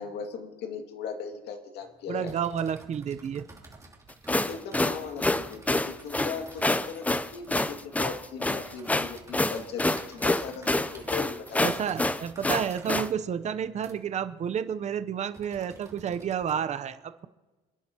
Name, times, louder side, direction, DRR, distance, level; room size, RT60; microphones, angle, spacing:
voice 1, 0.0-2.3 4.3-11.6, left 6 dB, 75° left, 3 dB, 2.2 m, -38 dB
sound 1, 1.8-16.5, right 3 dB, 20° right, 2.9 m, -53 dB
voice 2, 2.1-3.4 11.6-17.3, right 8 dB, 45° right, 11 dB, 0.7 m, -30 dB
sound 2, 4.1-13.1, left 2 dB, 10° left, 0.6 m, -27 dB
28.0 x 10.5 x 2.9 m, 1.2 s
cardioid pair, 110°, 17 cm